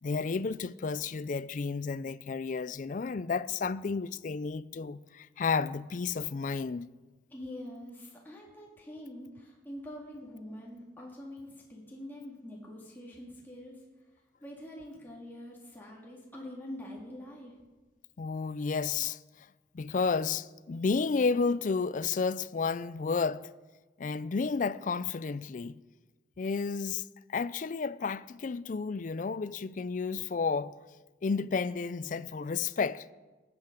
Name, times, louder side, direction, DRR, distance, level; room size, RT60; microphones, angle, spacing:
voice 1, 0.0-6.9 18.2-19.5 19.7-23.5 24.0-25.8 26.4-30.8 31.2-33.1, left 4 dB, 45° left, 0.4 m, -32 dB
voice 2, 7.3-13.8 14.4-17.5, left 1 dB, 10° left, 2.0 m, -45 dB
18.5 x 8.6 x 5.2 m
head